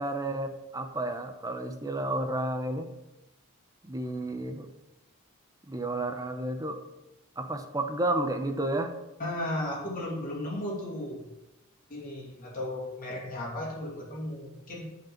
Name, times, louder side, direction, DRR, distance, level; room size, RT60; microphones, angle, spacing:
voice 1, 0.0-2.9 3.8-4.7 5.7-6.8 7.4-9.0, right 1 dB, 15° right, 6 dB, 0.8 m, -31 dB
voice 2, 9.2-11.2 11.9-15.0, left 1 dB, 40° left, -3 dB, 2.9 m, -35 dB
8.9 x 5.3 x 7.3 m, 0.97 s
head